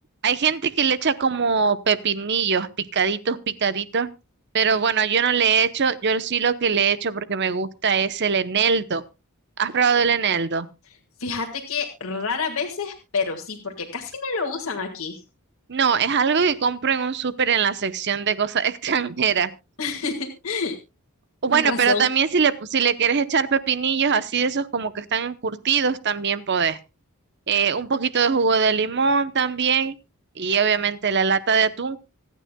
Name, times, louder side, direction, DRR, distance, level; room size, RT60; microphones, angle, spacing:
voice 1, 0.2-4.1 4.5-9.0 9.6-10.7 15.7-19.5 21.4-26.8 27.5-30.0 30.4-32.0, right 6 dB, 50° right, 14 dB, 0.8 m, -22 dB
voice 2, 11.2-15.2 19.8-20.8 21.5-22.1, left 4 dB, 70° left, 2 dB, 1.8 m, -28 dB
25.5 x 9.2 x 2.3 m, 0.27 s
head